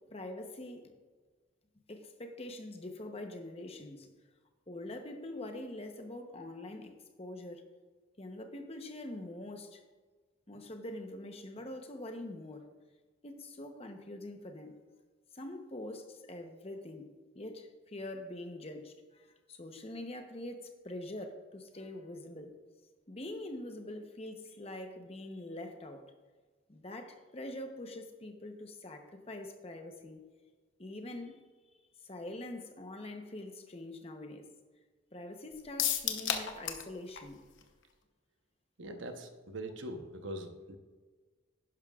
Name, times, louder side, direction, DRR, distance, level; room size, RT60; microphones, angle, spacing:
voice 1, 0.1-0.9 1.9-4.1 4.7-7.6 8.2-9.8 10.5-12.7 13.2-14.8 15.3-17.1 17.3-22.5 23.1-26.0 26.7-30.2 30.8-31.4 32.0-34.5 35.1-37.4, left 1 dB, 30° left, 5 dB, 0.9 m, -44 dB
sound 1, 35.8-36.9 37.2-37.3 37.6-37.7, left 9 dB, 70° left, 0.8 m, -32 dB
voice 2, 38.8-40.8, right 1 dB, 70° right, 6 dB, 1.0 m, -42 dB
11.0 x 11.0 x 2.4 m, 1.4 s
head